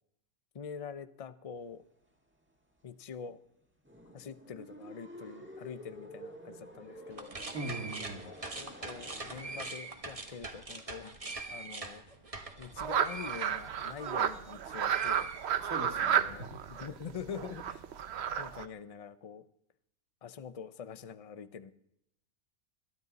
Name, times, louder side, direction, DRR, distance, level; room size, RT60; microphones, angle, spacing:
voice 1, 0.5-1.8 2.8-3.4 4.1-7.3 8.3-11.2 11.5-12.0 12.6-15.3 16.0-17.8 18.4-19.4 20.2-21.7, left 7 dB, 70° left, 13 dB, 0.3 m, -45 dB
sound 1, 3.8-9.7, equal, 10° right, 1.6 m, -49 dB
sound 2, 7.1-14.5 14.8-16.0, right 3 dB, 25° right, 1.3 m, -43 dB
voice 2, 7.5-8.3 15.6-16.6, right 2 dB, 75° right, 4 dB, 2.4 m, -40 dB
sound 3, 12.8-18.6, right 9 dB, 55° right, 0.9 m, -32 dB
21.5 x 12.0 x 4.1 m, 0.76 s
omnidirectional pair, 1.5 m